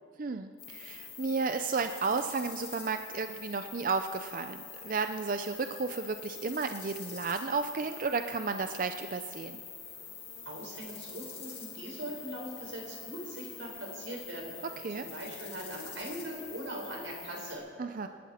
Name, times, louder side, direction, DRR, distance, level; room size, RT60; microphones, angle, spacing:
voice 1, 0.2-9.6 14.8-15.1 17.8-18.1, right 4 dB, 45° right, 8 dB, 0.5 m, -33 dB
sound 1, 0.6-17.6, left 7 dB, 30° left, 3.4 m, -46 dB
voice 2, 10.4-17.6, right 1 dB, 90° right, -1 dB, 4.7 m, -41 dB
27.5 x 11.5 x 4.3 m, 2.3 s
head